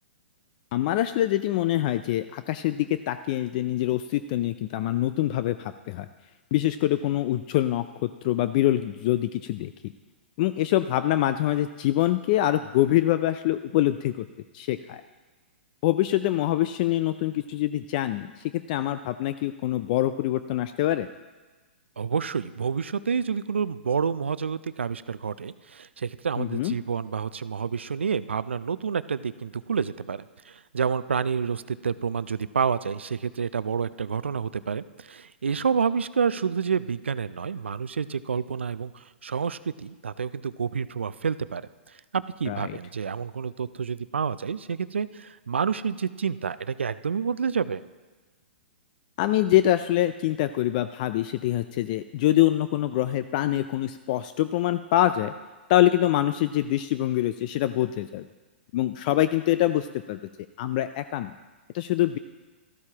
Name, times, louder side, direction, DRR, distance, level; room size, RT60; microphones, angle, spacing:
voice 1, 0.7-6.1 6.5-9.7 10.4-14.3 14.5-15.0 15.8-21.1 26.4-26.7 42.5-42.8 49.2-55.3 55.7-58.3 58.7-60.2 60.6-61.3 61.7-62.2, left 14 dB, 45° left, 11 dB, 0.4 m, -25 dB
voice 2, 22.0-47.8, right 6 dB, 85° right, 15 dB, 0.4 m, -29 dB
13.5 x 13.0 x 2.9 m, 1.3 s
hypercardioid pair, 125°, 6 cm